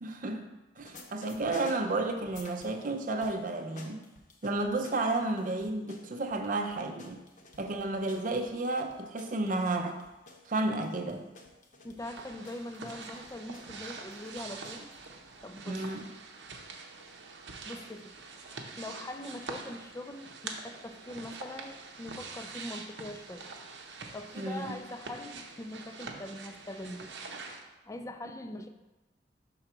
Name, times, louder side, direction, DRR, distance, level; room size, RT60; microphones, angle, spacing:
voice 1, 0.0-0.5 0.8-4.0 4.4-7.2 7.6-10.0 10.5-11.2 15.7-16.0 24.4-24.7, right 2 dB, 50° right, 4 dB, 0.6 m, -32 dB
sound 1, 0.8-2.9 3.2-15.0, left 2 dB, 45° left, 0.9 m, -53 dB
voice 2, 11.8-14.9 15.4-15.8 17.6-23.5 24.1-27.1 27.9-28.7, left 1 dB, 20° left, 7 dB, 0.4 m, -42 dB
sound 2, 12.0-27.6, right 4 dB, 80° right, 0.8 m, -45 dB
5.6 x 3.8 x 5.9 m, 1.0 s
head